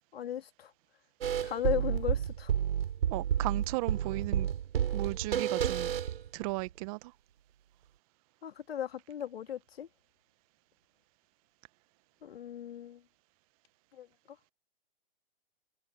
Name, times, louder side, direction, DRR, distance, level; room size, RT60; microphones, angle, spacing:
voice 1, 0.1-0.7 1.4-2.5 8.4-9.9 12.2-13.0 13.9-14.1, left 10 dB, 70° left, 2.5 m, -36 dB
sound 1, 1.2-6.7, right 9 dB, 65° right, 4.7 m, -31 dB
voice 2, 3.1-4.5 4.9-5.9 6.3-7.1, right 25 dB, 35° right, 1.1 m, -35 dB
hypercardioid pair, 130°, 31 cm